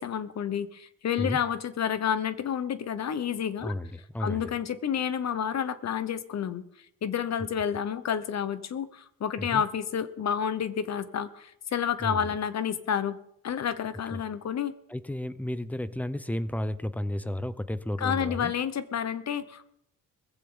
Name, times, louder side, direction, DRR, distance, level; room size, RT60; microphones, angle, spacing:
voice 1, 0.0-3.7 4.2-6.6 7.0-13.2 13.4-14.7 18.0-19.7, left 8 dB, 50° left, 14 dB, 1.1 m, -30 dB
voice 2, 3.6-4.5 9.4-9.6 12.0-12.3 14.1-14.2 14.9-18.5, left 1 dB, 5° left, 15 dB, 0.7 m, -32 dB
20.0 x 15.0 x 3.9 m, 0.74 s
cardioid pair, 115°, 34 cm